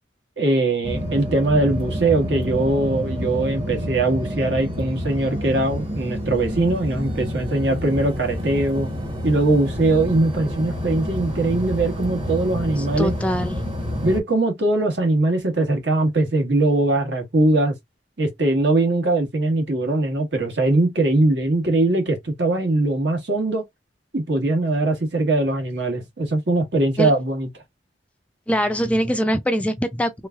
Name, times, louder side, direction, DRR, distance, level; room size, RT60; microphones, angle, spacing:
voice 1, 0.4-8.9 9.2-13.1 14.0-17.7 18.2-23.6 24.1-27.5, right 2 dB, 70° right, 1.3 m, -21 dB
sound 1, 0.8-14.2, equal, 30° right, 0.9 m, -28 dB
voice 2, 12.8-14.0 27.0-27.1 28.5-30.3, equal, 5° left, 0.3 m, -23 dB
3.3 x 3.2 x 2.3 m
head